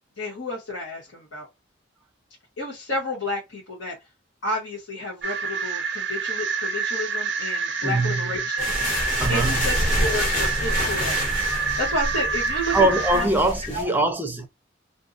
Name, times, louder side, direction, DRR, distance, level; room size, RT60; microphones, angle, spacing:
voice 1, 0.2-1.5 2.6-4.0 4.4-9.0 9.3-11.1 11.8-13.3 13.7-13.9, left 1 dB, 90° left, 1.3 m, -31 dB
sound 1, 5.2-13.3, right 4 dB, 65° right, 0.4 m, -27 dB
voice 2, 7.8-8.4 9.2-9.7 12.7-14.5, right 2 dB, 10° right, 0.5 m, -23 dB
sound 2, 8.6-13.8, left 1 dB, 45° left, 1.0 m, -27 dB
2.6 x 2.3 x 2.5 m
head